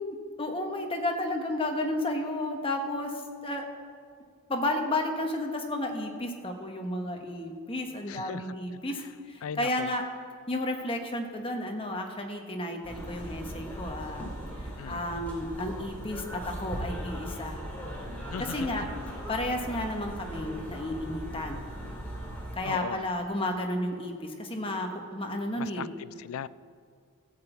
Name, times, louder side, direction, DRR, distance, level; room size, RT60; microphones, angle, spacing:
voice 1, 0.0-3.1 3.4-3.7 4.5-9.0 9.3-10.0 10.5-14.3 14.6-17.6 18.5-18.8 19.3-21.6 22.6-25.9, left 1 dB, 25° left, 3 dB, 1.2 m, -32 dB
voice 2, 8.1-8.6 8.9-9.0 9.4-9.9 14.8-15.0 18.3-18.7 22.6-23.1 25.6-26.5, left 8 dB, 80° left, 18 dB, 0.4 m, -38 dB
sound 1, 12.8-22.6, equal, 5° left, 2.4 m, -39 dB
14.0 x 6.1 x 8.1 m, 2.2 s
head